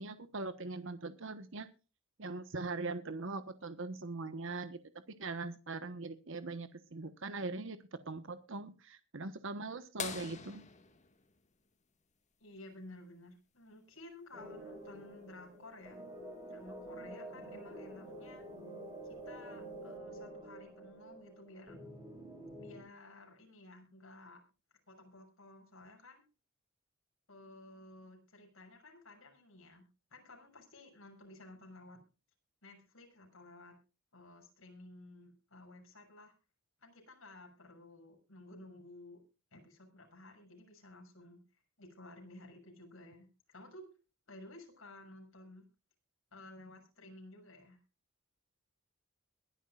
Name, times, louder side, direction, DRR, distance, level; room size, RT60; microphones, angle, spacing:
voice 1, 0.0-1.7 2.2-4.8 5.1-10.6, right 3 dB, 70° right, 11 dB, 1.2 m, -41 dB
sound 1, 10.0-12.4 14.4-14.5 16.7-16.8 18.5-18.8 19.6-19.7, left 6 dB, 35° left, 1.9 m, -44 dB
voice 2, 12.4-16.0 16.5-18.5 19.1-21.8 22.6-24.4 24.9-26.2 27.3-32.0 32.6-33.8 34.1-36.3 36.8-39.2 39.5-41.4 41.8-43.9 44.3-45.6 46.3-47.8, left 2 dB, 75° left, 3 dB, 7.0 m, -54 dB
sound 2, 14.3-22.8, right 1 dB, 20° right, 7.2 m, -48 dB
22.0 x 11.0 x 2.5 m, 0.32 s
head